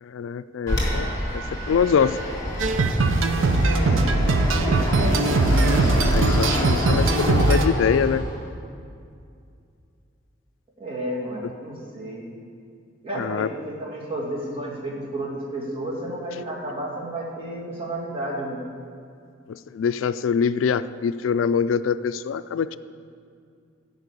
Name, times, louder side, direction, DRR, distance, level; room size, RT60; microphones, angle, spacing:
voice 1, 0.0-1.4 1.7-2.2 6.0-8.2 13.2-13.5 19.5-22.8, left 6 dB, 80° left, 14 dB, 0.4 m, -24 dB
Fixed-wing aircraft airplane, 0.7-8.4, left 1 dB, 20° left, 2.6 m, -27 dB
sound 1, 2.6-7.7, right 3 dB, 85° right, 0.6 m, -20 dB
voice 2, 3.7-5.2 10.8-12.3 13.0-18.6, right 1 dB, 30° right, -4 dB, 2.4 m, -32 dB
13.5 x 5.3 x 8.3 m, 2.3 s
head